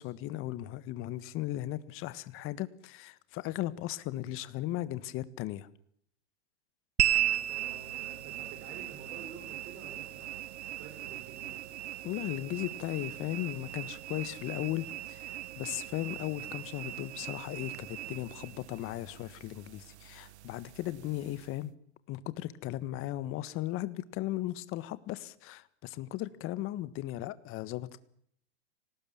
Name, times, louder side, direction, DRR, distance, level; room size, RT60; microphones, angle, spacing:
voice 1, 0.0-5.7 12.0-21.7 22.1-28.0, left 15 dB, 40° left, 15 dB, 1.6 m, -37 dB
sound 1, 7.0-21.6, right 13 dB, 75° right, 1.2 m, -37 dB
voice 2, 7.1-11.6, right 5 dB, 40° right, 3 dB, 6.6 m, -50 dB
28.5 x 19.0 x 7.5 m, 0.66 s
hypercardioid pair, 125°, 34 cm